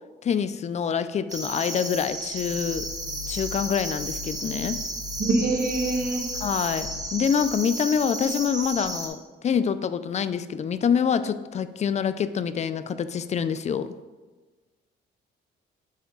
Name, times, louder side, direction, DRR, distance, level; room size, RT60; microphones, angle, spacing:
voice 1, 0.2-2.9 3.3-4.8 6.4-13.9, left 7 dB, 35° left, 13 dB, 0.4 m, -26 dB
sound 1, 1.3-9.1, right 2 dB, 20° right, 1.1 m, -33 dB
sound 2, 2.1-7.6, left 6 dB, 90° left, 0.8 m, -41 dB
voice 2, 5.2-6.2, right 2 dB, 50° right, 2 dB, 1.2 m, -24 dB
8.4 x 3.5 x 3.8 m, 1.3 s
cardioid pair, 90°, 20 cm